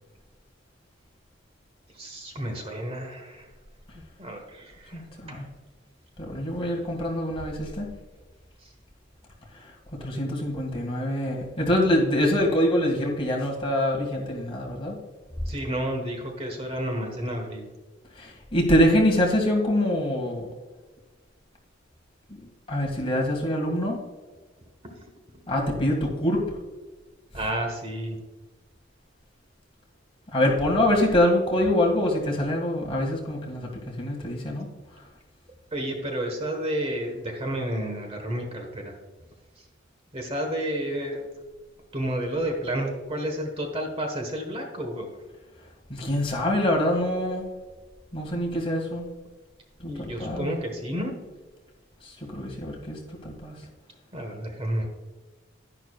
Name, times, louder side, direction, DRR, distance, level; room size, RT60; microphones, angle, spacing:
voice 1, 2.0-3.5 4.2-5.0 5.3-5.4 10.5-10.7 15.5-17.7 27.3-28.2 35.7-38.9 40.1-41.3 41.9-45.1 49.9-51.1 54.1-54.8, right 1 dB, 30° right, 3 dB, 1.3 m, -31 dB
voice 2, 4.9-5.5 6.2-7.9 9.6-15.0 18.2-20.5 22.3-24.0 25.5-26.4 30.3-34.7 45.9-47.5 48.1-49.1 49.8-50.5 52.0-53.5, left 1 dB, 30° left, -1 dB, 1.9 m, -25 dB
11.0 x 10.5 x 2.4 m, 1.2 s
head